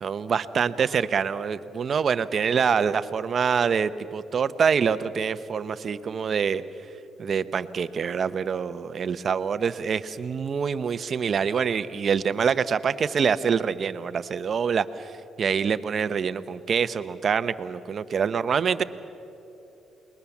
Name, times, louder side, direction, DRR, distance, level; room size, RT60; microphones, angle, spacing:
voice 1, 0.0-6.6 7.2-18.8, right 6 dB, 50° right, 13 dB, 0.9 m, -25 dB
29.5 x 21.0 x 7.3 m, 3.0 s
cardioid pair, 90°, 0 cm